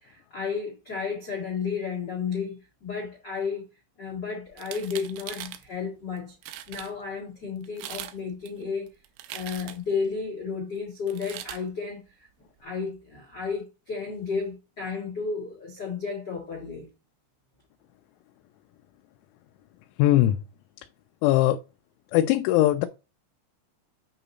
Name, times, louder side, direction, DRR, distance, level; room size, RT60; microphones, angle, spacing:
voice 1, 0.0-3.6 4.0-6.3 6.7-8.9 9.3-12.3 12.6-16.9, left 5 dB, 70° left, 1.0 m, -32 dB
sound 1, 4.5-5.6 6.2-6.3 6.4-6.9 7.6-8.2 8.5-9.9 11.1-11.6, right 13 dB, 85° right, 2.6 m, -40 dB
voice 2, 20.0-20.4 21.2-21.6 22.1-22.9, left 14 dB, 85° left, 3.0 m, -20 dB
8.8 x 2.9 x 3.9 m
omnidirectional pair, 5.6 m